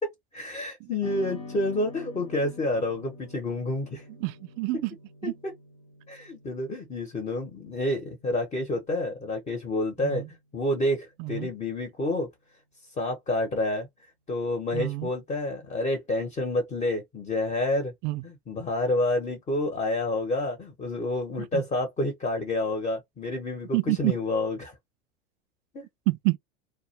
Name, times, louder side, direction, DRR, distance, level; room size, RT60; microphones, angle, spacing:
voice 1, 0.0-4.0 6.1-10.2 10.5-12.3 13.0-13.9 14.3-17.9 18.2-24.7 25.7-25.8, left 2 dB, 20° left, 0.8 m, -29 dB
sound 1, 1.0-9.5, left 3 dB, 60° left, 0.9 m, -46 dB
voice 2, 4.2-5.0 5.2-5.3 10.0-10.3 11.2-11.5 14.7-15.1 18.0-18.2 21.5-21.6 23.7-24.2 26.1-26.4, right 22 dB, 50° right, 0.5 m, -28 dB
2.2 x 2.1 x 2.8 m
hypercardioid pair, 105°, 32 cm